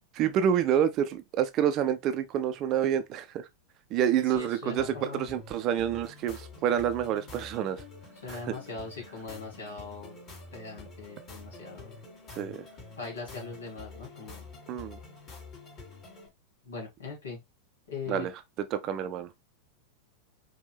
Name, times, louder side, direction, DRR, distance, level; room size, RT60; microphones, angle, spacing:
voice 1, 0.2-3.4 3.9-7.8 8.3-8.4 12.3-12.7 14.7-15.0 18.1-18.3 18.7-19.3, right 9 dB, 35° right, 0.6 m, -28 dB
voice 2, 4.3-5.3 8.2-10.2 10.5-12.0 13.0-14.5 16.6-17.4 17.9-18.3, left 4 dB, 65° left, 2.8 m, -40 dB
sound 1, 4.7-16.3, left 3 dB, 30° left, 3.1 m, -48 dB
5.2 x 3.0 x 3.2 m
figure-of-eight pair, 90°, 0 cm